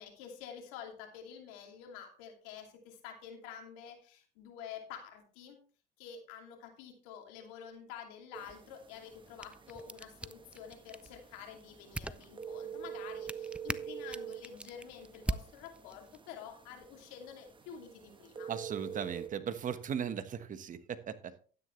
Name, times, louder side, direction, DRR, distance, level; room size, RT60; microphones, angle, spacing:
voice 1, 0.0-5.6 6.0-18.5, left 8 dB, 85° left, 3 dB, 2.7 m, -49 dB
sound 1, 8.3-19.3, right 8 dB, 25° right, 1.2 m, -47 dB
sound 2, 9.1-16.2, right 2 dB, 5° right, 0.5 m, -44 dB
voice 2, 18.5-21.3, right 8 dB, 45° right, 11 dB, 1.3 m, -37 dB
11.5 x 9.7 x 3.2 m, 0.40 s
supercardioid pair, 90°, 19 cm